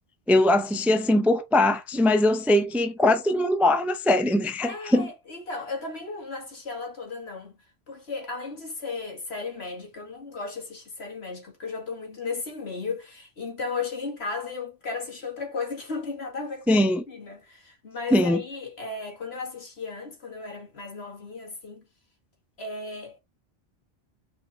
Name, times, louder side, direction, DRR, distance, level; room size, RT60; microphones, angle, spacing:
voice 1, 0.3-5.1 16.7-17.0 18.1-18.4, left 1 dB, ahead, 0.4 m, -21 dB
voice 2, 4.6-7.6 7.9-21.8 22.6-23.2, left 4 dB, 75° left, 2.3 m, -35 dB
4.9 x 4.5 x 4.2 m
omnidirectional pair, 1.1 m